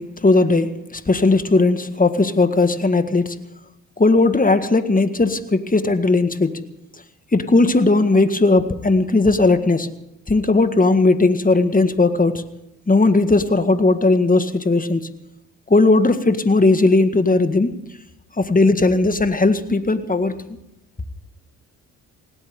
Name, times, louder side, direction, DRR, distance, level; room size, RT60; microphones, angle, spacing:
voice 1, 0.0-3.4 4.0-6.6 7.3-9.9 10.3-12.4 12.9-15.1 15.7-17.7 18.4-20.5, left 3 dB, 20° left, 10 dB, 1.8 m, -17 dB
20.0 x 18.0 x 3.8 m, 0.83 s
hypercardioid pair, 45°, 38 cm